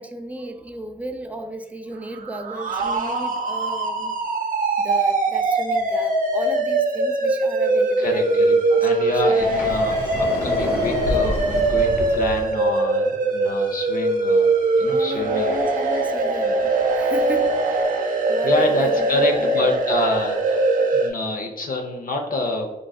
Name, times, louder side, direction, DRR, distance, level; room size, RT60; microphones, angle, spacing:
voice 1, 0.0-4.2 4.8-9.4 9.8-10.0 14.8-17.9 18.3-19.7, right 1 dB, 10° right, 6 dB, 0.5 m, -34 dB
sound 1, 2.0-21.1, right 2 dB, 55° right, 0.7 m, -21 dB
voice 2, 8.0-14.5 14.8-15.5 18.4-22.7, left 2 dB, 60° left, 2 dB, 0.5 m, -27 dB
Sliding door, 9.4-12.4, equal, 75° left, 1.2 m, -27 dB
4.5 x 2.5 x 2.3 m, 1.1 s
cardioid pair, 50°, 16 cm